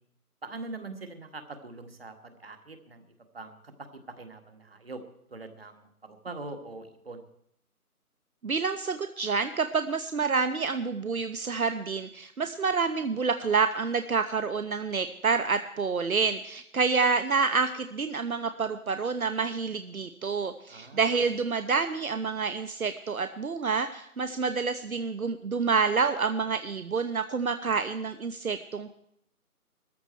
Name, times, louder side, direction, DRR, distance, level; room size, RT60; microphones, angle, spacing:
voice 1, 0.4-3.0 3.3-3.9 4.2-5.0 5.3-7.2 20.7-21.3, right 3 dB, 40° right, 7 dB, 1.8 m, -43 dB
voice 2, 8.4-29.0, right 5 dB, 65° right, 9 dB, 1.0 m, -28 dB
20.0 x 14.0 x 4.5 m, 0.70 s
figure-of-eight pair, 175°, 45 cm